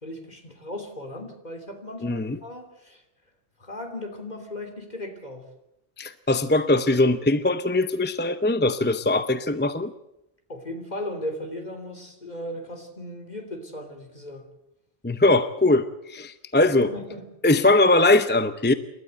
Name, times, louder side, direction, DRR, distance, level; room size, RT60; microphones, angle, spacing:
voice 1, 0.0-3.0 3.6-5.5 10.5-14.5 16.5-17.3, left 1 dB, 40° left, 5 dB, 3.3 m, -37 dB
voice 2, 2.0-2.4 6.0-9.9 15.0-16.9 17.4-18.7, left 2 dB, 15° left, 11 dB, 0.5 m, -21 dB
28.5 x 12.5 x 8.0 m, 0.88 s
omnidirectional pair, 1.1 m